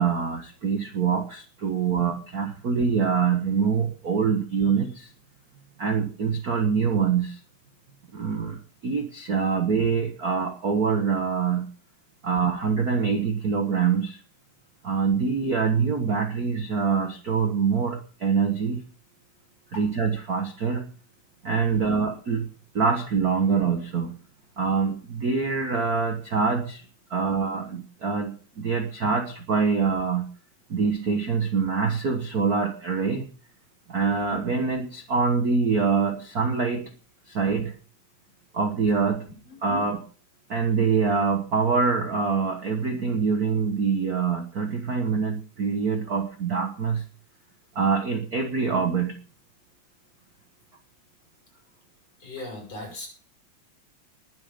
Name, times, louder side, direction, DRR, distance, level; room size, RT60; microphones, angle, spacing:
voice 1, 0.0-5.1 5.8-7.4 8.1-11.7 12.2-14.2 14.8-18.8 19.7-20.9 21.4-22.5 22.7-24.1 24.6-26.8 27.1-30.3 30.7-33.3 33.9-36.9 37.3-37.7 38.5-39.3 39.6-40.0 40.5-47.0 47.7-49.2, right 5 dB, 45° right, 6 dB, 1.2 m, -25 dB
voice 2, 21.7-22.1 39.4-39.6 52.2-53.1, left 2 dB, 55° left, 0 dB, 7.8 m, -39 dB
20.5 x 7.7 x 5.2 m, 0.38 s
omnidirectional pair, 3.4 m